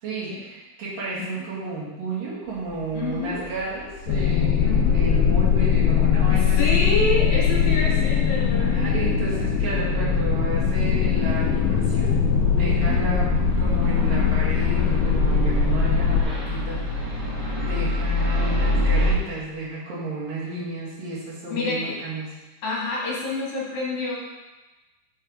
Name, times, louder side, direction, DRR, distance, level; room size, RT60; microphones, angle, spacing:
voice 1, 0.0-6.8 8.5-12.2 12.5-13.3 13.6-17.3 17.6-22.3, right 2 dB, 80° right, -8 dB, 3.8 m, -32 dB
sound 1, 2.6-19.1, left 2 dB, 10° right, 1.2 m, -30 dB
voice 2, 2.9-3.5 4.6-5.1 6.3-8.9 12.9-13.1 21.5-21.9 22.6-24.2, left 2 dB, 60° left, -4 dB, 2.8 m, -28 dB
sound 2, 4.1-16.2, left 6 dB, 80° left, 1.5 m, -21 dB
7.6 x 4.8 x 5.0 m, 1.1 s
omnidirectional pair, 3.8 m